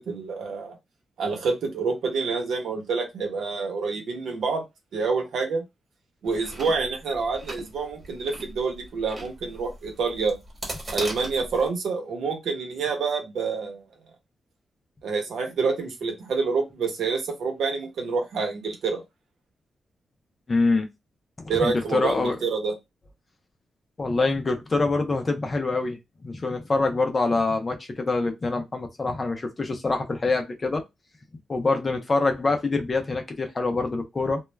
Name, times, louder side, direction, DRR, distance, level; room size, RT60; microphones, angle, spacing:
voice 1, 0.1-0.8 1.2-4.6 4.9-5.6 6.2-10.4 10.9-13.8 15.0-19.0 21.5-22.7, right 4 dB, 85° right, 0.9 m, -27 dB
Chewing mastication, 6.3-11.7, right 1 dB, 30° right, 1.2 m, -39 dB
voice 2, 20.5-20.9 21.6-22.4 24.0-30.8 31.5-34.4, left 3 dB, 25° left, 0.5 m, -25 dB
2.2 x 2.1 x 3.2 m
wide cardioid pair, 155°, 0 cm